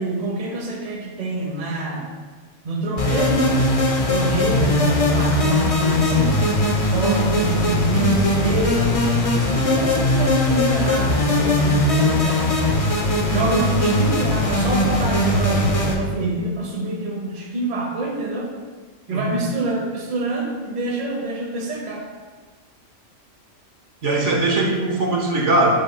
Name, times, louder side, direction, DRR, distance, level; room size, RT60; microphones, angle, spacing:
voice 1, 0.0-2.0 2.6-3.6 4.1-6.4 6.9-9.0 9.4-12.5 13.3-18.5 19.1-22.0, right 2 dB, 40° right, -1 dB, 0.9 m, -26 dB
sound 1, 3.0-15.9, left 1 dB, 35° left, 0.6 m, -19 dB
voice 2, 4.2-4.5 19.1-19.4 24.0-25.8, right 2 dB, 70° right, -2 dB, 1.4 m, -20 dB
7.7 x 6.1 x 2.2 m, 1.4 s
omnidirectional pair, 1.3 m